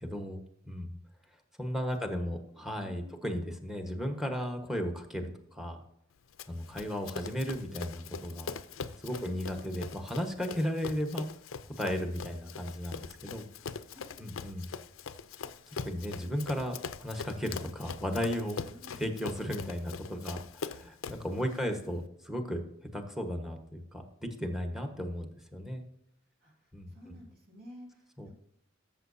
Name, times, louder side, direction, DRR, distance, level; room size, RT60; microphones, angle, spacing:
voice 1, 0.0-1.0 1.6-5.8 6.5-8.5 9.0-11.3 11.8-13.5 14.2-14.7 15.8-16.7 17.0-18.6 19.0-22.6 22.9-25.8 26.7-26.9 28.2-28.3, equal, ahead, 5 dB, 1.2 m, -35 dB
voice 2, 1.7-2.3 2.8-3.3 9.1-9.4 13.9-14.4 18.6-19.0 26.4-26.5 26.9-28.3, equal, 50° right, -2 dB, 2.9 m, -53 dB
Run, 6.4-21.3, left 5 dB, 70° left, 0.5 m, -42 dB
13.5 x 7.2 x 2.7 m, 0.74 s
head